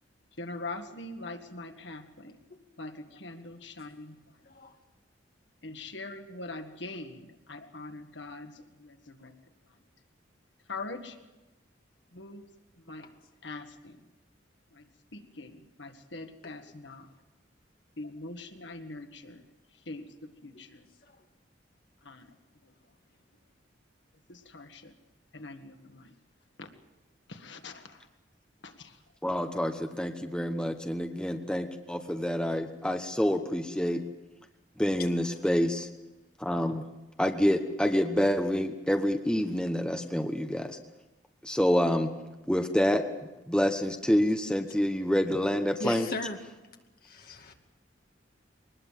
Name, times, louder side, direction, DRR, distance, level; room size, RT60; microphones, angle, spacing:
voice 1, 0.4-2.3 2.8-4.1 5.6-8.5 8.8-9.3 10.7-11.1 12.1-12.4 12.9-13.1 13.4-13.9 15.1-15.5 15.8-17.1 18.0-19.4 19.9-20.0 20.4-20.8 22.0-22.3 24.3-24.9 25.3-26.1 26.6-26.7 27.3-28.0 28.6-28.9, left 2 dB, 70° left, 7 dB, 1.8 m, -42 dB
voice 2, 4.5-4.8 27.6-27.8 45.8-46.4 47.0-47.5, left 2 dB, 50° left, 3 dB, 2.5 m, -38 dB
voice 3, 29.2-34.0 34.8-35.9 36.4-36.8 37.2-40.8 41.4-42.1 42.5-43.0 43.5-46.1, equal, 5° left, 5 dB, 1.1 m, -27 dB
23.0 x 20.0 x 7.5 m, 1.1 s
head